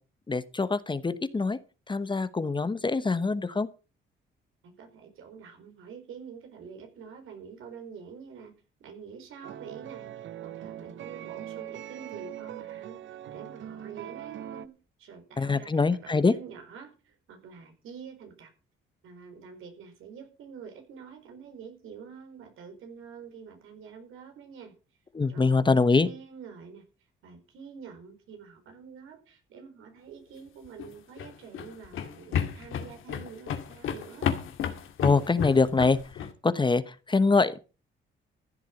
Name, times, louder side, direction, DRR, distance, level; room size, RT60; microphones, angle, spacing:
voice 1, 0.3-1.6 1.9-3.7 15.4-16.3 25.1-26.1 35.0-36.0 36.4-37.6, left 4 dB, 25° left, 14 dB, 1.0 m, -24 dB
voice 2, 4.6-8.5 8.8-13.0 13.3-18.5 19.0-24.7 25.3-26.8 27.2-34.3, right 6 dB, 85° right, 5 dB, 4.4 m, -46 dB
sound 1, 9.4-14.7, right 11 dB, 70° right, 0.8 m, -41 dB
sound 2, 30.7-36.3, left 8 dB, 80° left, 2.1 m, -32 dB
15.0 x 8.2 x 5.9 m, 0.34 s
cardioid pair, 95°, 20 cm